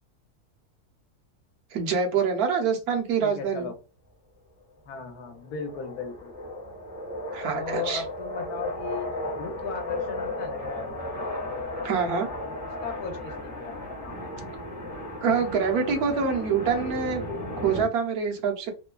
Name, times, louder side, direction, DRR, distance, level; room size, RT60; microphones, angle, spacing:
voice 1, 1.7-3.7 7.3-8.0 11.8-12.3 14.4-14.5 15.2-17.2 17.6-18.7, right 6 dB, 75° right, 2 dB, 1.2 m, -25 dB
voice 2, 3.2-3.8 4.9-6.8 7.5-11.1 12.3-14.2, left 5 dB, 75° left, 5 dB, 1.2 m, -37 dB
sound 1, 5.3-17.9, left 1 dB, 10° right, 0.7 m, -35 dB
3.1 x 2.1 x 2.2 m, 0.31 s
omnidirectional pair, 1.7 m